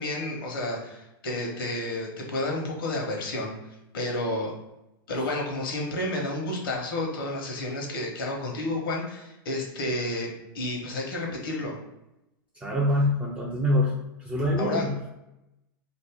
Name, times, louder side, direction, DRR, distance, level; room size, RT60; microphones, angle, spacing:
voice 1, 0.0-3.5 3.9-4.5 5.1-11.8 14.6-14.9, left 1 dB, 75° left, 0 dB, 1.0 m, -31 dB
voice 2, 12.6-15.1, left 1 dB, 10° right, -3 dB, 0.3 m, -25 dB
2.6 x 2.6 x 3.4 m, 0.92 s
hypercardioid pair, 135°, 12 cm